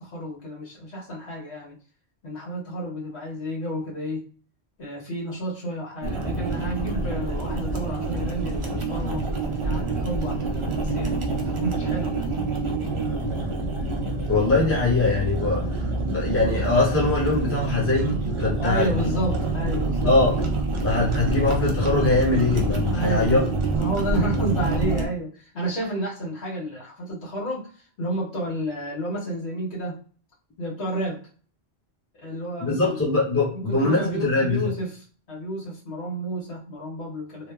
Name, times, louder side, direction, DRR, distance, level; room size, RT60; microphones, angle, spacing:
voice 1, 0.0-1.8 2.2-4.2 4.8-9.3 9.6-11.2 11.5-12.1 18.6-20.1 22.8-23.3 23.8-30.0 30.6-31.2 32.2-33.1 33.5-37.5, right 1 dB, 75° left, -4 dB, 1.3 m, -31 dB
sound 1, 6.0-25.1, right 2 dB, 55° right, 0.3 m, -27 dB
voice 2, 14.3-15.6 16.0-19.1 20.0-20.4 20.8-23.4 32.6-34.7, left 3 dB, 15° left, -3 dB, 0.6 m, -22 dB
2.9 x 2.0 x 2.3 m, 0.42 s
omnidirectional pair, 1.1 m